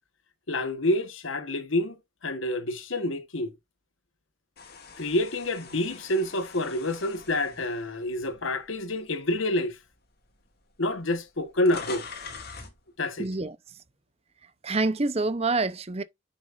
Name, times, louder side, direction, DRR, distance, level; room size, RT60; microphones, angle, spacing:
voice 1, 0.5-3.5 5.0-9.8 10.8-12.1 13.0-13.3, left 1 dB, 80° left, 1.3 m, -28 dB
sound 1, 4.6-8.8 9.3-9.5 10.4-10.5 10.7-12.8, left 4 dB, 50° left, 2.1 m, -43 dB
voice 2, 13.2-13.6 14.6-16.0, right 3 dB, 30° right, 0.7 m, -26 dB
9.6 x 6.2 x 2.5 m
head